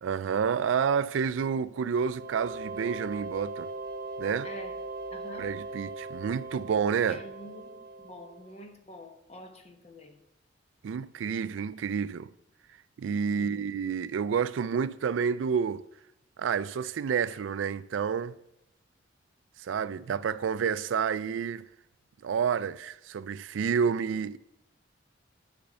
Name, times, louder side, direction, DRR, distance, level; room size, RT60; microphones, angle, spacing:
voice 1, 0.0-3.7 4.2-4.5 5.4-7.2 10.8-12.3 13.0-15.8 16.4-18.3 19.6-21.6 22.2-24.4, right 6 dB, 80° right, 0.3 m, -29 dB
sound 1, 2.0-8.6, right 2 dB, 50° right, 1.0 m, -39 dB
voice 2, 4.4-4.8 5.1-5.5 7.1-10.2 13.3-13.7, left 1 dB, 35° left, 1.0 m, -47 dB
8.7 x 5.2 x 6.8 m
head